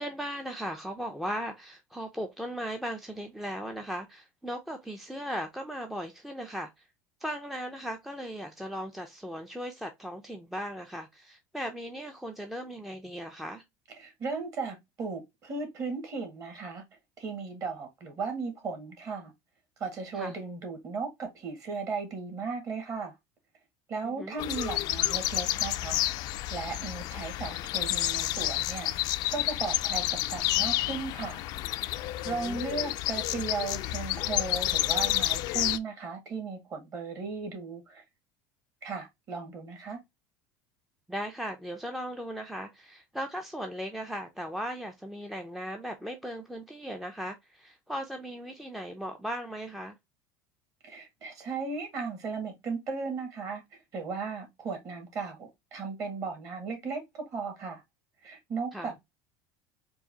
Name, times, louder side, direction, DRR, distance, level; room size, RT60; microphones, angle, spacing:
voice 1, 0.0-6.8 7.2-13.6 20.1-20.4 24.0-24.4 32.3-32.6 41.1-50.0 58.7-58.9, equal, ahead, 0.5 m, -37 dB
voice 2, 14.0-16.8 17.2-19.3 19.8-23.1 23.9-26.0 26.5-28.9 29.3-30.0 30.3-31.4 32.0-38.0 38.8-40.0 50.8-57.8 58.2-59.0, right 4 dB, 40° right, 1.8 m, -36 dB
sound 1, 24.4-35.8, left 15 dB, 55° left, 0.4 m, -30 dB
4.6 x 2.5 x 2.8 m
supercardioid pair, 130°, 8 cm